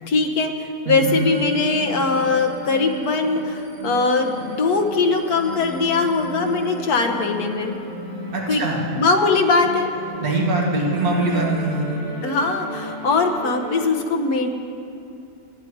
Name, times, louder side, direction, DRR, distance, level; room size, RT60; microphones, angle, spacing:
voice 1, 0.0-7.7 8.5-8.6 9.0-9.9 10.8-10.9 12.2-14.5, left 3 dB, 80° left, 5 dB, 1.6 m, -21 dB
sound 1, 1.0-13.9, left 1 dB, 90° right, 4.9 m, -34 dB
voice 2, 8.3-8.8 10.2-11.9, right 3 dB, 70° right, -3 dB, 2.3 m, -22 dB
17.5 x 11.0 x 4.9 m, 2.7 s
omnidirectional pair, 1.6 m